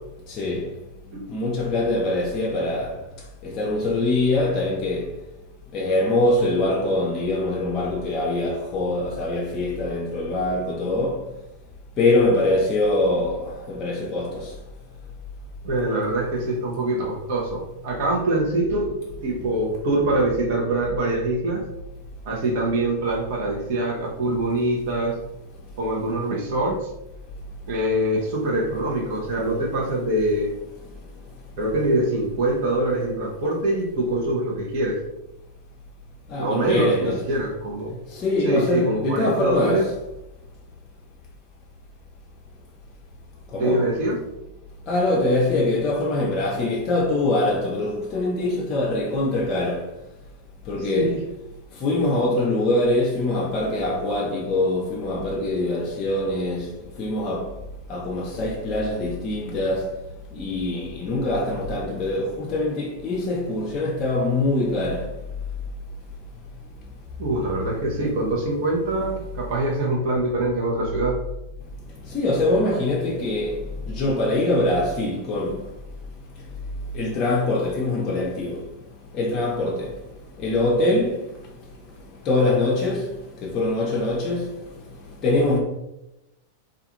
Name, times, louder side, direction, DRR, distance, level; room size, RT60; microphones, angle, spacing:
voice 1, 0.3-0.7 1.3-3.0 3.4-5.1 5.7-11.2 12.0-14.6 36.3-37.3 38.1-39.9 43.5-43.9 44.9-49.9 50.7-51.2 51.8-57.5 57.9-59.9 60.3-65.1 72.1-75.6 76.9-78.6 79.1-80.0 80.4-81.3 82.2-83.2 83.4-84.5 85.2-85.6, left 2 dB, 35° left, 0.4 m, -23 dB
voice 2, 15.6-19.0 19.2-21.6 22.3-25.2 25.8-26.9 27.7-30.5 31.6-35.0 36.4-38.0 38.4-39.8 43.6-44.2 50.8-51.2 67.2-71.2, right 1 dB, 60° right, 0.7 m, -24 dB
2.4 x 2.3 x 2.8 m
hypercardioid pair, 105°, 0 cm